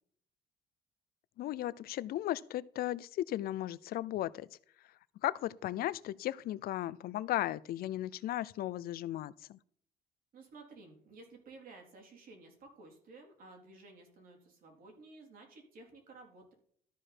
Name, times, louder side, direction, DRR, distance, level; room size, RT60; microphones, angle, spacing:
voice 1, 1.4-4.5 5.2-9.6, left 14 dB, 60° left, 0.5 m, -36 dB
voice 2, 10.3-16.5, right 3 dB, 55° right, 3.8 m, -54 dB
13.0 x 4.9 x 4.3 m
cardioid pair, 110°, 17 cm